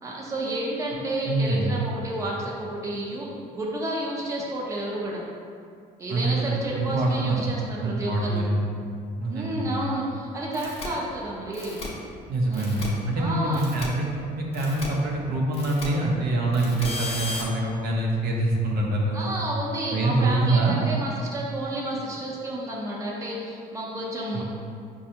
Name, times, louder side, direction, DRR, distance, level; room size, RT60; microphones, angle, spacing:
voice 1, 0.0-3.3 3.6-5.2 6.0-8.4 9.3-11.8 12.5-12.7 13.1-13.6 19.1-24.5, right 1 dB, 20° right, -4 dB, 0.6 m, -31 dB
voice 2, 1.3-1.7 6.1-7.4 7.8-8.6 9.2-9.8 12.3-14.0 14.4-19.3 19.9-20.8 24.3-24.5, right 2 dB, 60° right, -2 dB, 0.7 m, -25 dB
sound 1, 10.5-10.9 11.5-11.9 12.5-12.9 13.5-13.9 14.5-14.9 15.5-15.9 16.5-17.4, left 2 dB, 35° left, 0.7 m, -34 dB
5.1 x 2.3 x 2.8 m, 2.3 s
cardioid pair, 110°, 17 cm